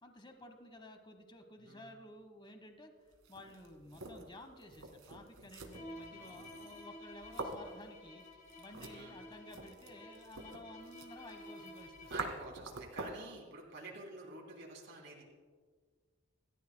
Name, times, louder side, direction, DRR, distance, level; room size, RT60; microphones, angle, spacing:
voice 1, 0.0-2.9 3.3-8.2 8.6-12.1 13.8-13.9, left 1 dB, 25° left, 6 dB, 1.2 m, -53 dB
voice 2, 1.6-2.0 5.9-6.4 8.9-9.1 12.1-15.2, right 3 dB, 55° right, -2 dB, 3.1 m, -50 dB
sound 1, 3.1-13.3, right 2 dB, 75° right, 1.9 m, -47 dB
Bowed string instrument, 5.7-12.4, left 1 dB, 40° left, 3.6 m, -52 dB
27.0 x 14.5 x 2.2 m, 1.5 s
head